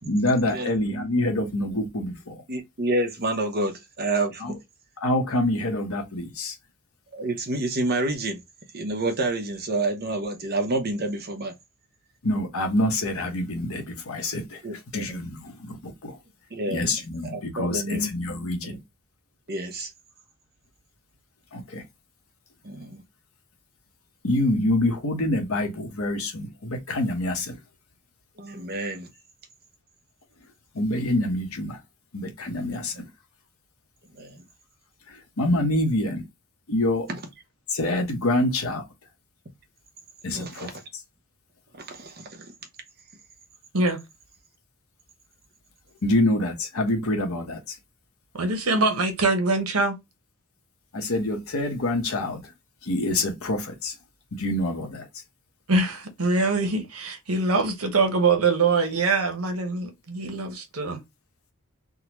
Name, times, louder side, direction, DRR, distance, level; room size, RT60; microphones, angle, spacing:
voice 1, 0.1-2.3 4.4-4.5 5.0-6.5 12.2-14.4 14.9-15.4 15.6-15.8 16.0-16.1 16.7-17.8 18.1-18.8 21.5-21.8 24.2-27.6 30.8-31.8 32.1-32.9 35.4-36.2 36.7-37.1 37.7-38.8 40.2-40.7 46.0-47.6 50.9-52.4 52.9-53.9 54.3-55.0, left 1 dB, 75° left, 1.0 m, -26 dB
voice 2, 2.5-4.6 7.1-8.4 8.7-11.5 14.6-15.2 16.5-16.8 17.2-18.1 18.6-18.8 19.5-19.9 22.6-23.0 28.4-29.1 32.9-33.0 34.1-34.4 37.1-37.2 40.3-40.8 41.8-42.5, right 2 dB, 45° right, 0.9 m, -29 dB
voice 3, 48.3-50.0 55.7-61.0, right 3 dB, 85° right, 1.0 m, -23 dB
3.7 x 2.2 x 2.9 m
head